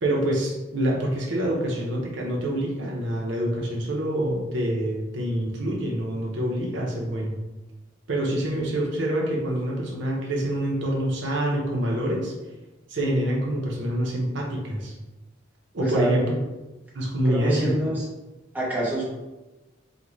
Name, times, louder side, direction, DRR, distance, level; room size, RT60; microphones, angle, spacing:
voice 1, 0.0-7.4 8.1-12.3 12.9-14.9 15.7-16.4 16.9-17.7, right 1 dB, 65° right, -2 dB, 0.6 m, -26 dB
voice 2, 15.8-16.1 17.2-18.0 18.5-19.0, right 1 dB, 10° right, -7 dB, 0.7 m, -27 dB
3.7 x 2.1 x 3.0 m, 1.1 s
head